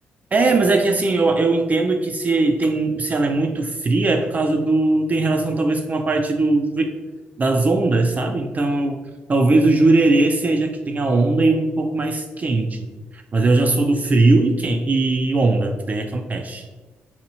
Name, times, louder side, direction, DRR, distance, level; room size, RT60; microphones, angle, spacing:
voice 1, 0.3-6.9 7.4-9.0 9.3-12.8 13.1-16.6, right 2 dB, 35° right, 4 dB, 0.3 m, -19 dB
2.8 x 2.2 x 2.8 m, 1.2 s
supercardioid pair, 55°, 4 cm